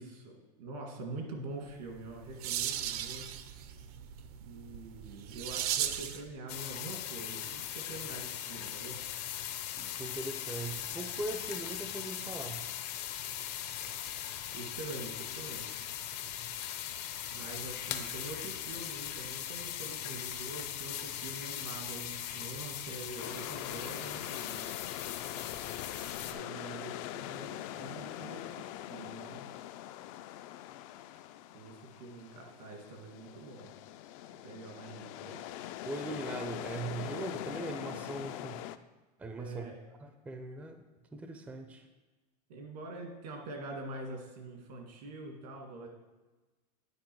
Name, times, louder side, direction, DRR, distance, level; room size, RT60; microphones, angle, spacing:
voice 1, 0.0-3.2 4.4-9.0 14.5-15.8 17.3-24.7 26.2-29.5 31.5-33.7 34.2-35.5 39.4-39.8 42.5-45.9, right 2 dB, 80° right, 2 dB, 2.1 m, -45 dB
sound 1, 1.8-6.3, right 10 dB, 65° right, 0.6 m, -37 dB
sound 2, 6.5-26.3, left 10 dB, 75° left, 0.8 m, -40 dB
voice 2, 9.7-12.6 35.8-38.6 39.2-39.7 40.0-40.8 41.1-41.9, right 2 dB, 5° right, 6 dB, 0.4 m, -40 dB
sound 3, 23.2-38.8, left 13 dB, 55° left, 0.4 m, -43 dB
9.7 x 4.8 x 4.5 m, 1.2 s
supercardioid pair, 140°, 21 cm